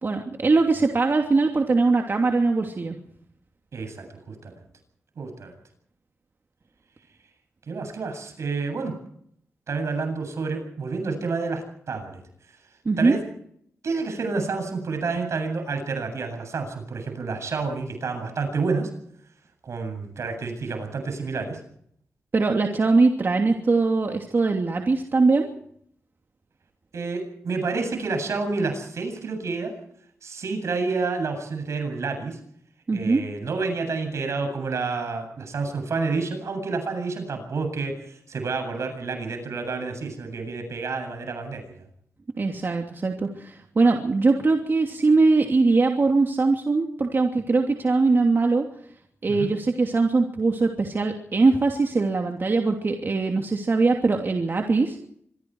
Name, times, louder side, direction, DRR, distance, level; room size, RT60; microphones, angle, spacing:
voice 1, 0.0-3.0 12.8-13.1 22.3-25.5 32.9-33.2 42.4-48.7 49.2-55.1, right 3 dB, 45° right, 2 dB, 2.8 m, -21 dB
voice 2, 3.7-4.5 5.2-5.5 7.7-8.9 9.7-12.2 13.0-13.2 13.8-18.9 19.6-21.6 26.9-29.7 30.2-32.4 32.9-41.8 49.3-49.5, right 4 dB, 75° right, 6 dB, 8.0 m, -29 dB
26.0 x 22.0 x 4.8 m, 0.67 s
cardioid pair, 65°, 5 cm